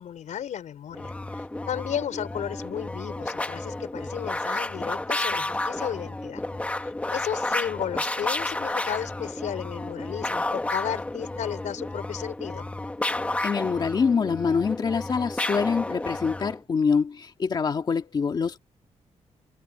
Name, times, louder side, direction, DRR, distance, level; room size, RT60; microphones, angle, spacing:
voice 1, 0.0-6.4 6.8-12.7, left 9 dB, 85° left, 4.3 m, -34 dB
sound 1, 0.9-16.6, left 2 dB, 10° left, 1.3 m, -31 dB
voice 2, 13.4-18.6, left 5 dB, 35° left, 2.3 m, -25 dB
wide cardioid pair, 175°, 12 cm